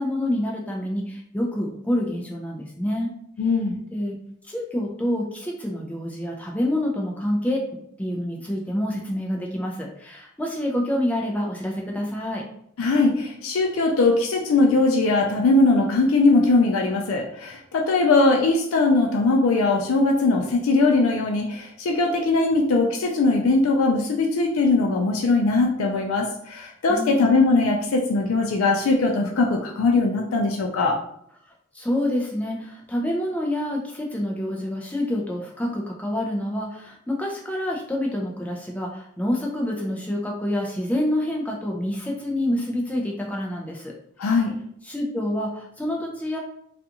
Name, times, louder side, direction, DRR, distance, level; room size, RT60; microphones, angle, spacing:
voice 1, 0.0-3.1 3.9-4.1 4.5-7.6 8.0-12.4 26.9-27.3 31.7-43.9 44.8-46.4, left 1 dB, 5° left, -1 dB, 0.3 m, -27 dB
voice 2, 3.4-3.8 12.8-31.0 44.2-44.5, left 3 dB, 85° left, 1 dB, 0.4 m, -20 dB
2.5 x 2.3 x 2.8 m, 0.71 s
head